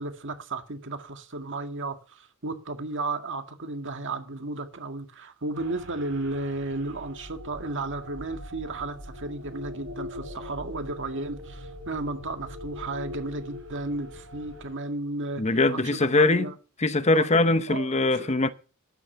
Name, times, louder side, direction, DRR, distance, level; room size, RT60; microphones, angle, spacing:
voice 1, 0.0-15.8 16.2-16.5 17.1-17.3 17.7-18.3, right 2 dB, 60° right, 1.9 m, -34 dB
sound 1, 5.5-14.7, left 1 dB, 80° right, 5.8 m, -42 dB
voice 2, 15.4-16.5 16.8-18.5, left 2 dB, 30° left, 0.8 m, -22 dB
12.5 x 10.0 x 5.7 m
head